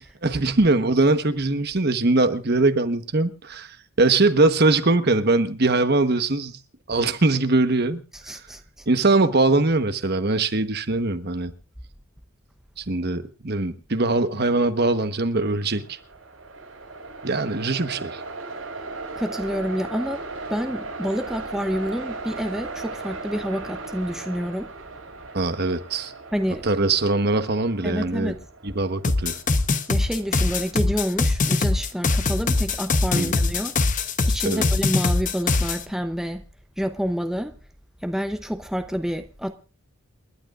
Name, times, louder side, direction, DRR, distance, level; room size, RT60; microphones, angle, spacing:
voice 1, 0.2-6.5 6.9-8.0 8.9-11.5 12.8-16.0 17.2-18.2 25.3-26.1 26.6-28.3 28.6-29.4 33.1-33.4 34.4-34.7, right 2 dB, 50° right, 1.2 m, -22 dB
voice 2, 8.3-8.6 19.2-20.2 20.5-24.7 26.3-26.7 27.8-28.4 29.9-36.4 36.8-37.6 38.0-39.5, equal, ahead, 0.7 m, -28 dB
Train, 15.6-32.8, right 3 dB, 85° right, 6.0 m, -38 dB
sound 1, 29.0-35.8, left 3 dB, 40° left, 0.9 m, -22 dB
29.0 x 12.0 x 2.5 m
head